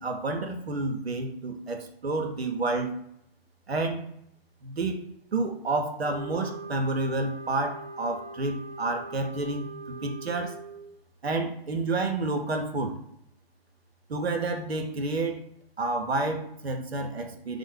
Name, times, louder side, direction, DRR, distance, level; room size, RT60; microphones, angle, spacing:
voice 1, 0.0-2.9 3.7-4.1 4.6-5.0 5.3-10.6 11.2-13.0 14.1-15.4 15.8-17.6, right 2 dB, 85° right, 4 dB, 0.6 m, -29 dB
sound 1, 6.0-10.9, right 3 dB, 20° left, 1.0 m, -41 dB
3.3 x 2.0 x 3.2 m, 0.76 s
figure-of-eight pair, 125°, 30 cm